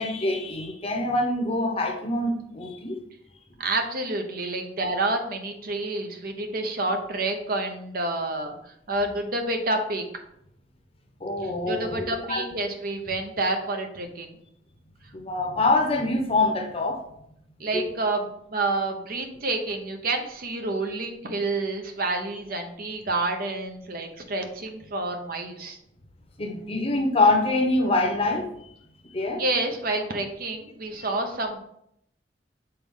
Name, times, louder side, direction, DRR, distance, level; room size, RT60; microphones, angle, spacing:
voice 1, 0.0-3.0 11.2-12.4 15.1-17.0 17.7-17.8 26.4-28.5 29.1-29.4, left 2 dB, 35° left, 4 dB, 0.8 m, -25 dB
voice 2, 3.6-8.5 8.9-10.0 11.4-14.3 17.6-18.2 18.5-25.8 29.4-31.6, right 2 dB, 55° right, 5 dB, 0.8 m, -28 dB
6.8 x 4.1 x 3.7 m, 0.74 s
head